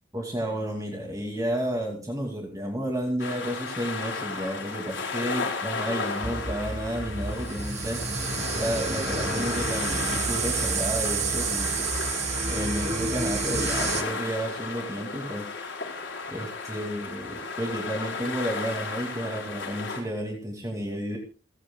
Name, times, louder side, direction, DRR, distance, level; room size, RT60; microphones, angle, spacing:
voice 1, 0.1-8.0 8.5-11.9 12.5-15.4 16.3-21.2, equal, 20° right, 0 dB, 2.5 m, -31 dB
sound 1, 3.2-20.0, left 4 dB, 80° left, 4.4 m, -34 dB
sound 2, 6.2-14.0, right 4 dB, 35° right, 1.5 m, -29 dB
28.5 x 10.0 x 2.3 m, 0.35 s
head